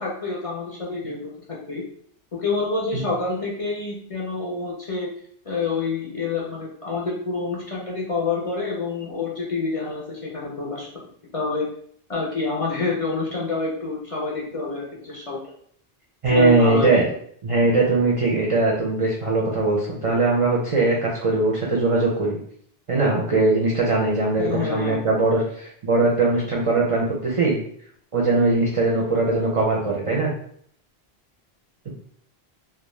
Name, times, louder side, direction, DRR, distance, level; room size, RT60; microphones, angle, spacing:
voice 1, 0.0-1.8 2.3-5.1 5.5-10.9 11.3-11.7 12.1-15.4 16.3-17.0 24.4-25.0, left 4 dB, 45° left, -4 dB, 0.4 m, -27 dB
voice 2, 16.2-17.0 17.4-22.4 22.9-27.6 28.1-30.3, right 3 dB, 50° right, -3 dB, 0.4 m, -20 dB
2.4 x 2.0 x 3.0 m, 0.63 s
omnidirectional pair, 1.1 m